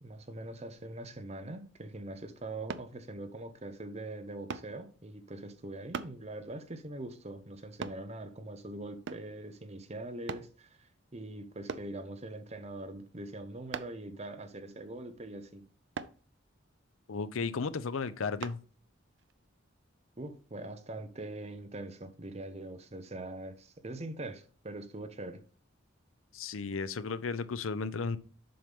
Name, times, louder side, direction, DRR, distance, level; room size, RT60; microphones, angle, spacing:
voice 1, 0.0-15.6 20.2-25.4, right 2 dB, 30° right, 0.8 m, -43 dB
sound 1, 2.7-2.9 4.5-4.7 5.9-6.2 7.8-8.0 9.1-9.3 10.3-10.5 11.7-11.9 13.7-14.0 15.9-16.2 18.4-18.6 19.2-19.3, right 5 dB, 60° right, 0.5 m, -39 dB
voice 2, 17.1-18.6 26.3-28.2, left 4 dB, 80° left, 0.6 m, -34 dB
7.7 x 5.5 x 3.5 m
head